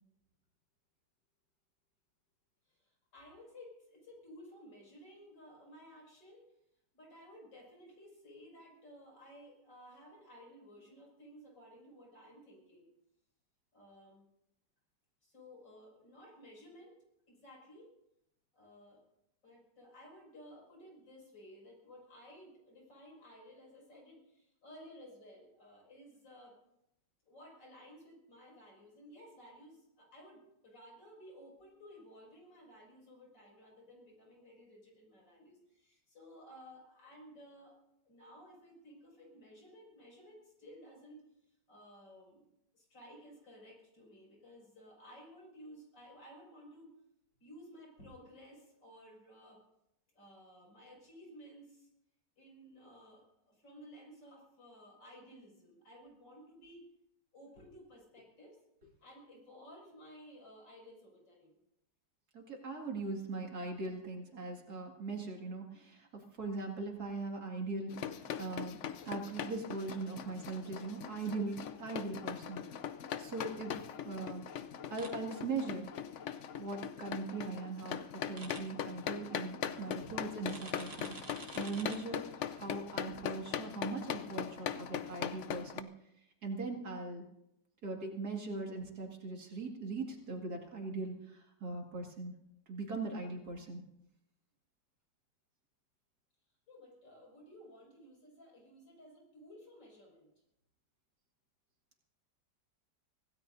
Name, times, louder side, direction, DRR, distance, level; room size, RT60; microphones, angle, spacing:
voice 1, 2.7-6.5 6.9-12.9 13.7-14.2 15.2-17.0 17.3-17.9 18.5-19.0 19.4-26.5 27.3-37.8 38.0-41.2 41.5-46.9 47.4-49.6 50.1-51.9 52.4-56.9 57.3-58.6 59.0-61.6 96.7-100.3, equal, 85° left, -2 dB, 6.7 m, -56 dB
voice 2, 62.3-68.8 69.0-72.6 73.2-74.4 74.9-75.9 76.6-85.9 86.4-87.2 87.8-92.3 92.7-93.8, right 3 dB, 55° right, 0 dB, 2.7 m, -40 dB
sound 1, 67.9-85.8, left 9 dB, 65° left, 0.7 m, -41 dB
sound 2, 75.0-75.1 78.4-78.6 80.5-82.0, right 3 dB, 35° right, 1.6 m, -48 dB
25.0 x 17.0 x 2.7 m, 0.82 s
omnidirectional pair, 1.9 m